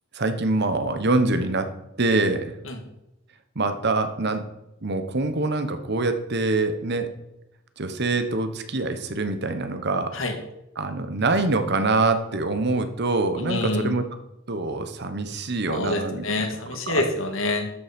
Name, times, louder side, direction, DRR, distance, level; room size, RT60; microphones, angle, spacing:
voice 1, 0.1-1.7 2.0-2.5 3.5-4.4 4.8-7.1 7.8-10.1 10.8-14.0 14.5-16.5 16.9-17.0, right 3 dB, 55° right, 9 dB, 1.2 m, -24 dB
voice 2, 13.4-13.9 15.7-17.7, left 2 dB, 75° left, 4 dB, 2.0 m, -26 dB
12.5 x 7.3 x 5.3 m, 0.89 s
head